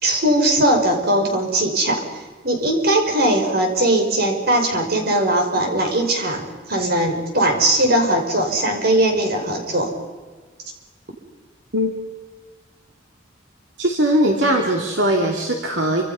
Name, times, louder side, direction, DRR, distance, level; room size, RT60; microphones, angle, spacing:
voice 1, 0.0-2.0 2.4-9.9, right 1 dB, 55° right, 3 dB, 5.7 m, -19 dB
voice 2, 13.8-16.0, right 1 dB, 70° right, 1 dB, 2.9 m, -19 dB
28.5 x 26.5 x 5.7 m, 1.4 s
head